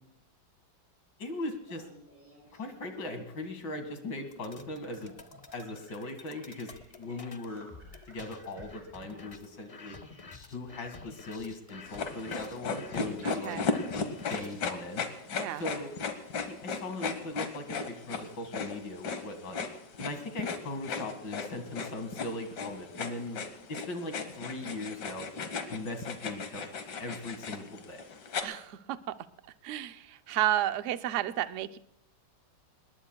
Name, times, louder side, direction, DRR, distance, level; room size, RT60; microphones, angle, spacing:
voice 1, 1.2-1.8 2.5-5.1 5.5-6.7 7.0-7.7 8.1-9.9 10.5-15.0 15.6-15.9 16.5-19.6 20.0-23.4 23.7-25.5 25.7-26.6 27.0-28.0, left 2 dB, 90° left, 6 dB, 2.6 m, -39 dB
Laughter, 1.6-2.9 3.6-4.6 5.1-10.1, right 1 dB, 5° right, 7.2 m, -58 dB
sound 1, 4.3-14.7, left 3 dB, 45° left, 0.4 m, -50 dB
Sheathed Pen On Skin, 11.9-28.4, left 5 dB, 75° left, 2.0 m, -36 dB
voice 2, 13.2-13.7 15.4-15.6 28.4-29.1 29.6-31.8, right 12 dB, 60° right, 10 dB, 0.8 m, -32 dB
26.0 x 21.0 x 2.3 m, 0.80 s
omnidirectional pair, 1.9 m